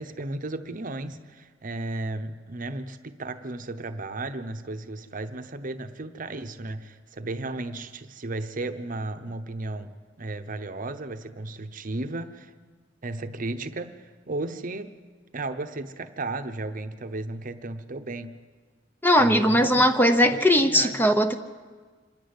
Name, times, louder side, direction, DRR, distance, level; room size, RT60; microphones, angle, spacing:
voice 1, 0.0-12.5 13.0-14.9 15.3-18.4 19.2-19.9 20.2-21.0, right 2 dB, 45° right, 9 dB, 0.9 m, -34 dB
voice 2, 19.0-21.4, equal, 10° left, 8 dB, 0.8 m, -19 dB
26.0 x 10.0 x 9.7 m, 1.5 s
head